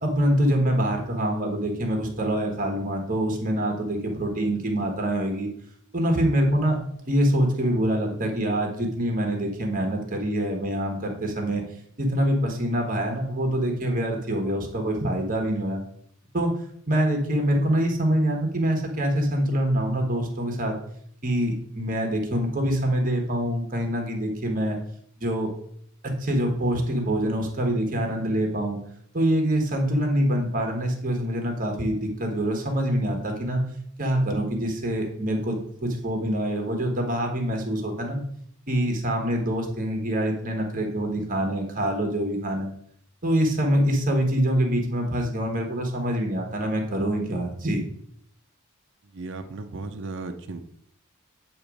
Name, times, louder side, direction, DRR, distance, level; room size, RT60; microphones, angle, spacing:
voice 1, 0.0-5.5 5.9-6.8 7.1-11.6 12.0-15.8 16.3-16.5 16.9-20.8 21.2-24.8 25.2-25.5 26.0-28.8 29.1-33.6 34.0-38.2 38.7-42.7 43.2-47.8, right 1 dB, 40° right, 2 dB, 1.3 m, -25 dB
voice 2, 49.1-50.6, right 3 dB, 60° right, 7 dB, 0.6 m, -35 dB
8.6 x 3.0 x 4.9 m, 0.66 s
head